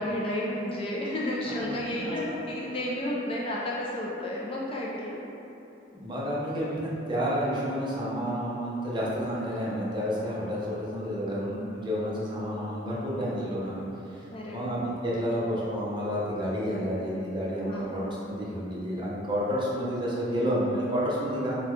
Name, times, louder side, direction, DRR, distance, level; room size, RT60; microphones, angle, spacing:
voice 1, 0.0-5.2 14.3-14.7 17.7-17.9, left 1 dB, 30° left, -4 dB, 0.3 m, -32 dB
voice 2, 1.5-2.4 5.9-13.8 14.1-21.6, equal, 25° right, -6 dB, 0.6 m, -30 dB
4.0 x 2.2 x 3.0 m, 2.9 s
head